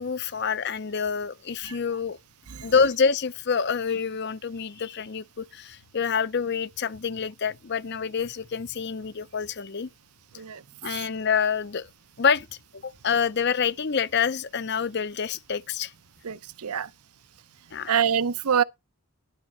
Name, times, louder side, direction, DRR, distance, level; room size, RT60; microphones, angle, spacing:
voice 1, 0.0-2.2 2.6-9.9 10.8-11.9 12.2-12.5 12.8-15.9 17.7-18.0, left 6 dB, 50° left, 0.6 m, -27 dB
voice 2, 16.2-16.9 17.9-18.6, right 7 dB, 85° right, 0.7 m, -25 dB
12.0 x 4.1 x 7.8 m
head